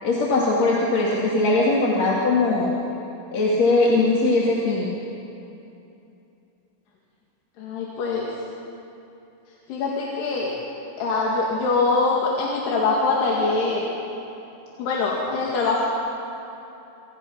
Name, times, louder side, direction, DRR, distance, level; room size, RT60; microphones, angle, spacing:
voice 1, 0.0-2.7 3.3-4.9, left 2 dB, 45° left, -4 dB, 3.3 m, -20 dB
voice 2, 7.6-8.3 9.7-10.5 11.0-13.9 14.8-15.9, left 3 dB, 80° left, -4 dB, 4.4 m, -23 dB
28.0 x 26.5 x 5.8 m, 2.9 s
omnidirectional pair, 4.6 m